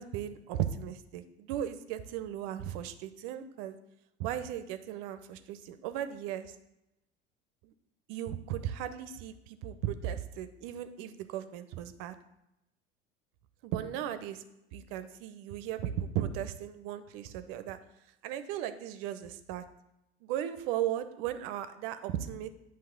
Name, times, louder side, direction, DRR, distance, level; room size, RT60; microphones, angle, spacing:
voice 1, 0.0-3.8 4.2-6.6 7.6-7.7 8.1-12.1 13.6-14.4 14.7-17.8 18.2-19.6 20.2-22.5, right 11 dB, 60° right, 11 dB, 0.7 m, -36 dB
9.0 x 3.1 x 5.8 m, 0.89 s
hypercardioid pair, 75°, 33 cm